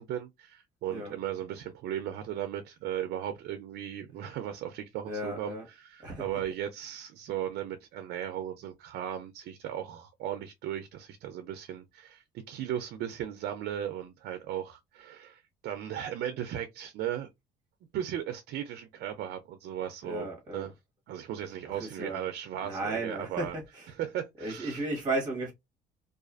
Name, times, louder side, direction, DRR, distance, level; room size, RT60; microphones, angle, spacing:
voice 1, 0.0-17.3 17.9-20.3 20.5-20.7 21.1-23.5 24.0-24.8, right 10 dB, 70° right, 0.5 m, -36 dB
voice 2, 0.9-1.2 5.0-5.7 6.0-6.5 20.0-20.7 21.4-22.3 22.6-24.0 24.4-25.5, right 2 dB, 20° right, 1.1 m, -35 dB
2.5 x 2.4 x 2.4 m
cardioid pair, 110°, 17 cm